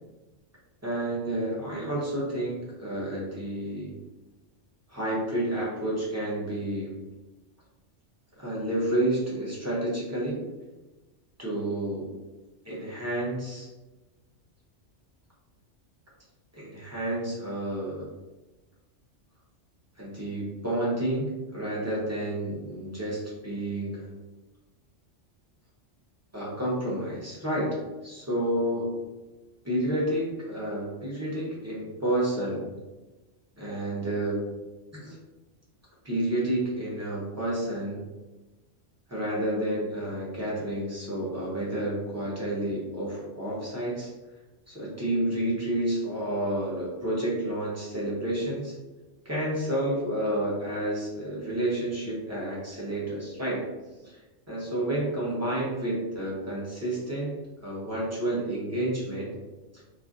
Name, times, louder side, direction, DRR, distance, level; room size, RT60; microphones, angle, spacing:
voice 1, 0.8-3.9 4.9-6.9 8.4-10.4 11.4-12.1 12.6-13.7 16.5-18.0 20.0-24.1 26.3-27.8 28.0-29.0 29.6-32.6 33.6-34.4 34.9-35.2 36.0-38.0 39.1-44.1 44.7-48.8 49.2-53.6 54.0-54.2 54.5-57.3 57.6-59.3 59.7-59.8, right 1 dB, 20° right, -6 dB, 0.5 m, -30 dB
2.6 x 2.4 x 2.4 m, 1.1 s
omnidirectional pair, 1.3 m